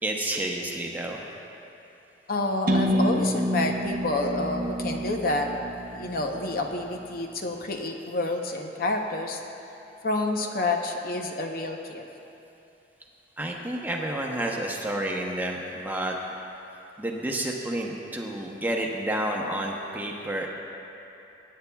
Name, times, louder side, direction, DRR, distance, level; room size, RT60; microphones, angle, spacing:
voice 1, 0.0-1.2 13.4-16.2 17.0-20.5, right 1 dB, 10° right, -1 dB, 0.8 m, -30 dB
voice 2, 2.3-5.5 5.9-9.4 10.0-12.0, left 2 dB, 50° left, 3 dB, 0.8 m, -28 dB
sound 1, 2.7-6.5, equal, 50° right, 0.9 m, -28 dB
22.0 x 9.3 x 2.3 m, 2.9 s
head